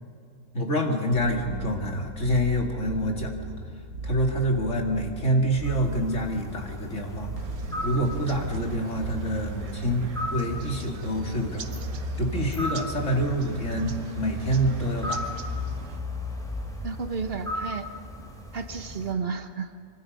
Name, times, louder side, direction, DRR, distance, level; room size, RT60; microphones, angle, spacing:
voice 1, 0.5-3.3 4.0-7.3 7.8-10.1 10.3-11.7 12.2-15.2, equal, 55° left, 1 dB, 2.9 m, -26 dB
sound 1, 1.1-9.6, right 3 dB, 60° right, 1.6 m, -38 dB
sound 2, 5.6-19.1, left 1 dB, ahead, 3.0 m, -36 dB
sound 3, 7.4-16.0, right 3 dB, 90° right, 1.6 m, -38 dB
voice 2, 16.8-17.9 18.5-19.7, right 5 dB, 45° right, 8 dB, 1.3 m, -32 dB
26.0 x 24.5 x 5.5 m, 2.2 s
omnidirectional pair, 1.5 m